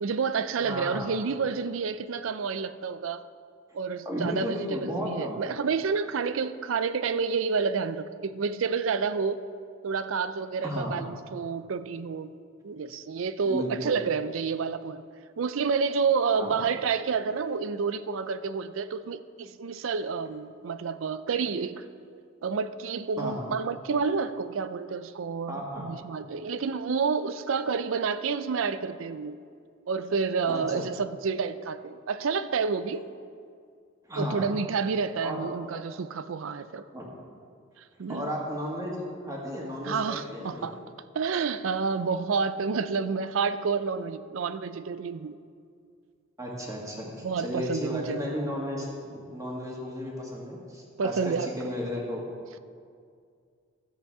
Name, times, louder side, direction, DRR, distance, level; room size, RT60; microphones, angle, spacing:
voice 1, 0.0-3.2 3.7-9.4 9.8-12.4 12.6-15.1 15.4-21.8 22.4-29.4 29.9-33.0 34.2-36.8 37.8-38.3 39.8-40.8 41.1-45.4 47.2-48.2 51.0-51.7, right 5 dB, 75° right, 0.5 m, -29 dB
voice 2, 0.6-1.1 4.1-5.4 10.6-11.1 13.5-14.0 16.3-16.5 23.2-23.5 25.5-25.9 30.5-30.8 34.0-34.5 35.2-35.5 36.9-37.1 38.1-40.7 46.4-52.3, equal, 15° right, 1.9 m, -34 dB
13.0 x 8.0 x 4.8 m
head